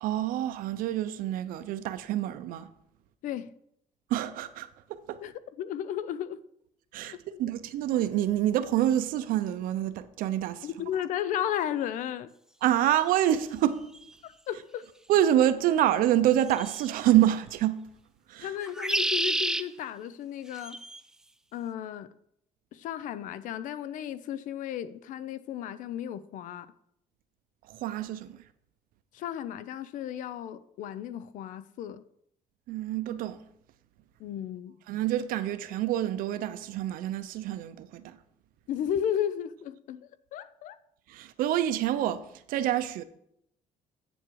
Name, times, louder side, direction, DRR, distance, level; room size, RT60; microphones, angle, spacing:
voice 1, 0.0-2.7 4.1-5.2 6.9-10.7 12.6-13.9 15.1-17.9 18.3-18.5 27.7-28.4 32.7-33.4 34.9-38.2 41.1-42.2 42.5-43.0, right 12 dB, 80° right, 0.7 m, -27 dB
voice 2, 5.2-6.4 7.0-7.4 10.6-12.3 14.2-14.9 18.4-20.8 21.5-22.1 22.7-26.7 29.1-32.0 34.2-34.8 38.7-40.8, left 10 dB, 65° left, 0.6 m, -34 dB
sound 1, 13.9-14.0 16.5-16.9 18.6-19.6 20.6-21.0, right 1 dB, 5° right, 0.3 m, -29 dB
8.6 x 7.1 x 4.7 m
cardioid pair, 165°, 14 cm